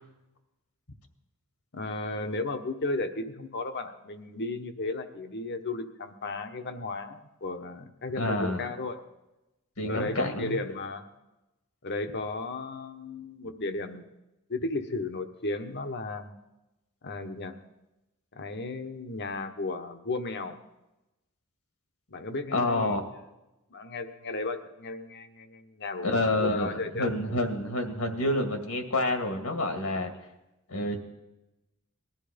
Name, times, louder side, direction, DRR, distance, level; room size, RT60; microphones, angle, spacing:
voice 1, 1.7-9.0 9.9-11.0 11.8-14.0 14.5-16.3 17.0-17.5 18.3-20.6 22.1-23.0 23.7-27.1, left 2 dB, 50° left, 8 dB, 1.3 m, -34 dB
voice 2, 8.2-8.6 9.8-10.6 22.5-23.1 26.0-30.1 30.7-31.0, left 1 dB, 70° left, 5 dB, 2.2 m, -28 dB
20.0 x 13.0 x 5.2 m, 0.97 s
head